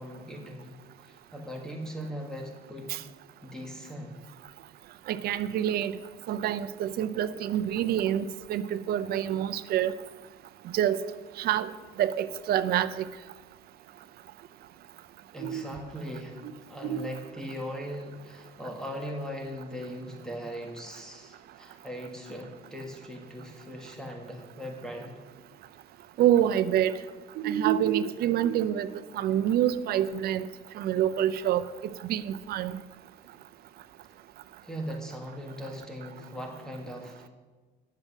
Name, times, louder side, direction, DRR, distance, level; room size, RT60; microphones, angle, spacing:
voice 1, 0.0-3.0 3.4-4.2 15.3-25.2 34.6-37.3, equal, 5° left, 1.6 m, -39 dB
voice 2, 5.1-5.9 6.3-9.9 10.7-11.0 11.4-11.7 12.0-12.9 15.4-15.6 16.8-17.1 26.2-27.0 27.4-28.9 29.1-30.5 30.8-31.6 32.0-32.8, right 11 dB, 65° right, 0.6 m, -26 dB
10.5 x 7.6 x 6.3 m
cardioid pair, 110°, 17 cm